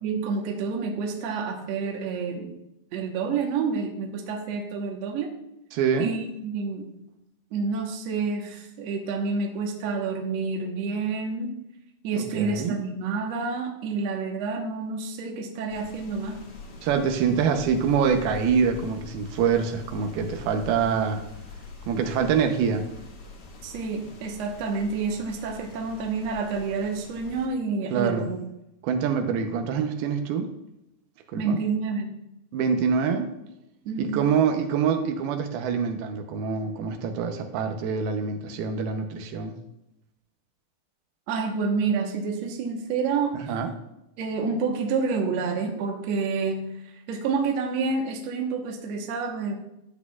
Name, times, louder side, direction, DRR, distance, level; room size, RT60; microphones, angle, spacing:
voice 1, 0.0-2.5 2.9-5.3 6.0-6.9 7.5-11.5 12.0-16.4 23.6-28.4 31.4-32.2 33.9-34.2 41.3-43.4 44.2-46.6 46.9-49.5, right 4 dB, 65° right, 1 dB, 1.8 m, -28 dB
voice 2, 5.7-6.2 12.2-12.8 16.8-21.2 21.9-22.9 27.9-28.3 28.8-30.5 31.3-31.6 32.5-33.3 34.0-39.5 43.3-43.7, right 6 dB, 85° right, 5 dB, 2.8 m, -25 dB
sound 1, 15.7-27.5, left 3 dB, 50° left, 1.8 m, -43 dB
12.0 x 8.2 x 2.4 m, 0.84 s
omnidirectional pair, 4.3 m